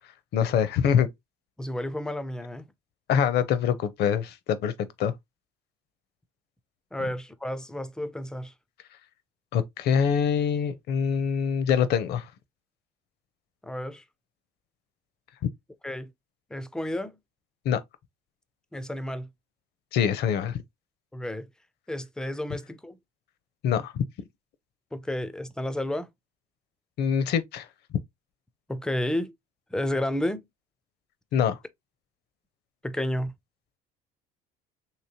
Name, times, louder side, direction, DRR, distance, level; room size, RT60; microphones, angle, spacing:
voice 1, 0.3-1.1 3.1-5.1 9.5-12.3 17.6-17.8 19.9-20.6 23.6-24.0 27.0-27.7 31.3-31.6, left 7 dB, 55° left, 0.6 m, -24 dB
voice 2, 1.6-2.7 6.9-8.5 13.6-14.0 15.8-16.1 16.5-17.2 18.7-19.3 21.1-21.5 21.9-23.0 24.9-26.1 28.7-29.3 29.7-30.5 32.8-33.3, left 1 dB, 5° left, 0.3 m, -31 dB
3.2 x 2.9 x 2.7 m
cardioid pair, 110°, 20 cm